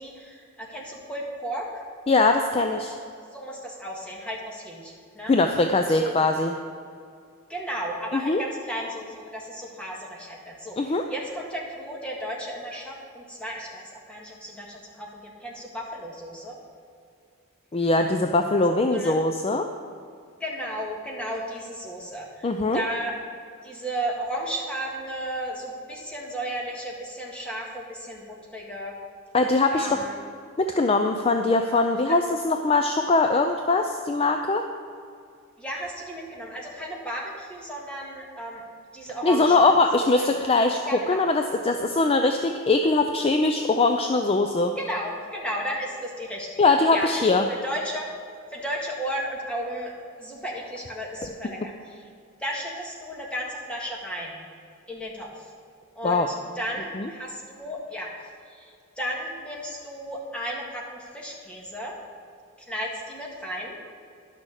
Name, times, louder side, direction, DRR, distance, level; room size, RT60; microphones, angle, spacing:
voice 1, 0.0-1.8 2.8-2.9 3.3-5.3 5.9-6.1 7.5-16.6 18.9-19.1 20.4-23.1 23.6-28.2 28.5-28.9 29.7-30.2 32.1-32.2 35.6-38.6 38.9-39.8 40.1-40.4 40.9-41.2 44.8-48.1 48.5-49.9 50.2-52.1 52.4-54.4 54.9-55.5 56.0-58.1 58.5-62.0 62.7-63.8, equal, 5° left, -3 dB, 1.7 m, -34 dB
voice 2, 2.1-2.9 5.3-6.5 8.3-8.4 10.8-11.0 17.7-19.7 22.4-22.8 29.3-29.9 30.6-34.6 39.2-40.8 41.1-44.7 46.6-47.4 56.0-56.3 57.0-57.1, left 3 dB, 25° left, 5 dB, 0.4 m, -21 dB
11.0 x 6.3 x 6.5 m, 2.4 s
head